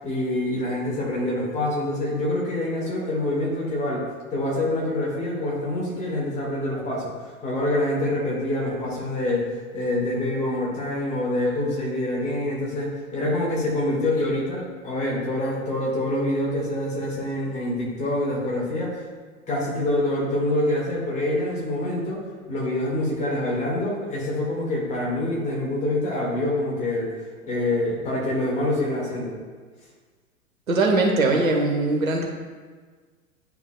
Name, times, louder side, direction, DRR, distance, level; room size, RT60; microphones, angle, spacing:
voice 1, 0.0-4.0 4.3-7.1 7.4-19.0 19.5-22.2 22.5-27.1 27.4-29.4, left 1 dB, 15° left, -4 dB, 1.6 m, -26 dB
voice 2, 30.7-32.3, right 2 dB, 70° right, 1 dB, 1.1 m, -21 dB
10.0 x 4.5 x 2.2 m, 1.5 s
figure-of-eight pair, 105°, 43 cm